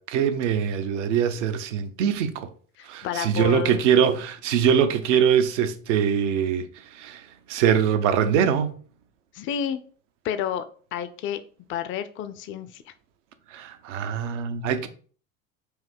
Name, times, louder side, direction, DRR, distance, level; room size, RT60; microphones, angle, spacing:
voice 1, 0.0-2.5 2.8-6.7 6.9-7.2 7.5-8.7 13.5-14.9, right 8 dB, 65° right, 0.7 m, -23 dB
voice 2, 2.8-3.8 9.3-9.8 10.2-10.7 10.9-11.4 11.7-12.8, left 8 dB, 30° left, 0.5 m, -30 dB
4.7 x 2.7 x 3.4 m
figure-of-eight pair, 75°, 39 cm